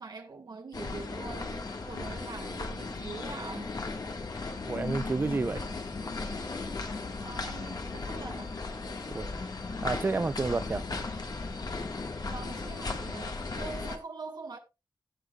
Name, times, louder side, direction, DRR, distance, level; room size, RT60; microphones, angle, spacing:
voice 1, 0.0-3.7 7.2-8.6 12.3-14.6, right 4 dB, 60° right, 1.3 m, -43 dB
sound 1, 0.7-14.0, left 3 dB, 55° left, 1.5 m, -36 dB
voice 2, 4.7-5.6 9.1-9.3 9.8-10.8, right 3 dB, 25° right, 0.3 m, -30 dB
16.0 x 6.1 x 2.3 m
wide cardioid pair, 105°, 8 cm